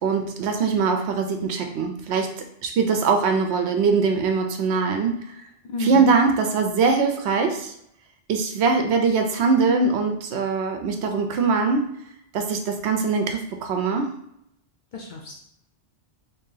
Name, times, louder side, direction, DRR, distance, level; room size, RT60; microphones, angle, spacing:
voice 1, 0.0-2.3 2.6-5.1 5.8-7.7 8.3-11.9 12.3-14.1, right 4 dB, 70° right, 4 dB, 0.8 m, -22 dB
voice 2, 5.7-6.1 14.9-15.4, left 2 dB, 55° left, 0 dB, 0.6 m, -31 dB
2.9 x 2.7 x 3.8 m, 0.74 s
omnidirectional pair, 1.2 m